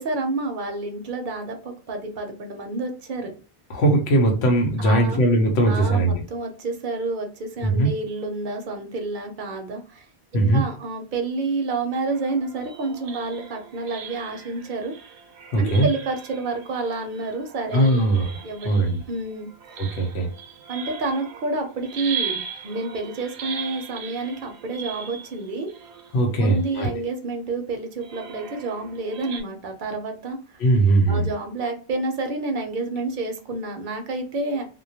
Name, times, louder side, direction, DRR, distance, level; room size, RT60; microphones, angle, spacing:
voice 1, 0.0-3.3 4.8-5.2 5.7-10.1 10.3-14.9 15.6-18.0 18.4-18.7 19.1-19.5 20.7-25.7 26.4-30.4 31.1-34.7, right 3 dB, 60° right, 4 dB, 0.7 m, -29 dB
voice 2, 3.7-6.2 7.6-7.9 10.3-10.6 15.5-15.9 17.7-18.3 18.6-19.0 19.8-20.3 26.1-26.9 30.6-31.3, right 2 dB, 90° left, 1 dB, 0.9 m, -19 dB
sound 1, 12.1-27.0 28.0-29.4, right 7 dB, 85° right, 0.8 m, -38 dB
2.2 x 2.2 x 2.6 m, 0.38 s
omnidirectional pair, 1.1 m